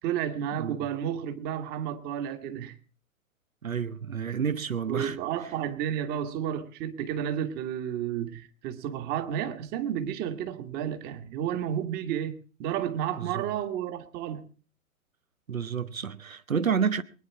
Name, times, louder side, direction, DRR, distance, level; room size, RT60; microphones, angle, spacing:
voice 1, 0.0-2.7 4.9-14.4, right 9 dB, 25° right, 1.7 m, -32 dB
voice 2, 3.6-5.2 13.2-13.4 15.5-17.0, right 7 dB, 75° right, 1.2 m, -29 dB
23.5 x 9.8 x 4.7 m
figure-of-eight pair, 120°, 41 cm